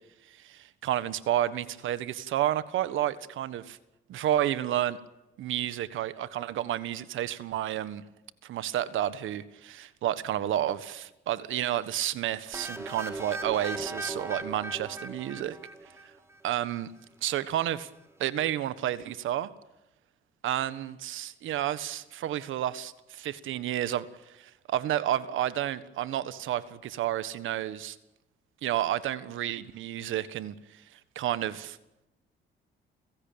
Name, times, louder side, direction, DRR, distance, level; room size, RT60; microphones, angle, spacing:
voice 1, 0.4-3.8 4.1-5.0 5.4-8.0 8.4-15.6 16.4-16.9 17.2-17.9 18.2-19.5 20.4-24.1 24.3-28.0 28.6-30.8 31.1-31.8, right 12 dB, 80° right, 14 dB, 1.5 m, -31 dB
sound 1, 12.5-16.3, right 2 dB, 15° right, 3.7 m, -38 dB
29.5 x 16.5 x 8.8 m, 0.96 s
cardioid pair, 90°, 20 cm